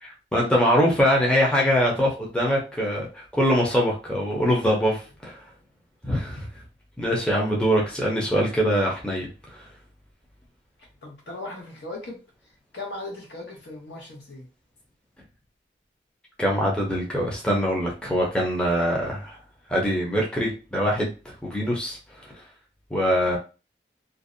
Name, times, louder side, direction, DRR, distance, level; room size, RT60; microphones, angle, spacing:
voice 1, 0.0-5.4 6.0-6.5 7.0-9.6 16.4-19.4 19.7-21.1 21.4-22.0 22.9-23.4, equal, 5° left, -3 dB, 0.5 m, -23 dB
voice 2, 11.0-12.2 12.7-14.5, left 2 dB, 75° left, 0 dB, 0.9 m, -37 dB
2.5 x 2.0 x 2.5 m, 0.32 s
head